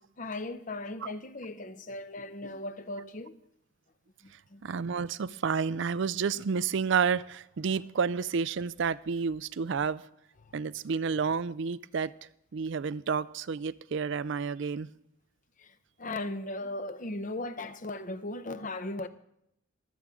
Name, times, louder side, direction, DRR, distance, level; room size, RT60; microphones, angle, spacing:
voice 1, 0.2-3.4 4.2-4.6 10.4-10.5 15.6-19.1, left 2 dB, 40° left, 0.7 m, -38 dB
voice 2, 4.6-10.0 10.5-12.1 12.5-14.9, right 5 dB, 60° right, 0.4 m, -30 dB
23.5 x 8.4 x 3.7 m
head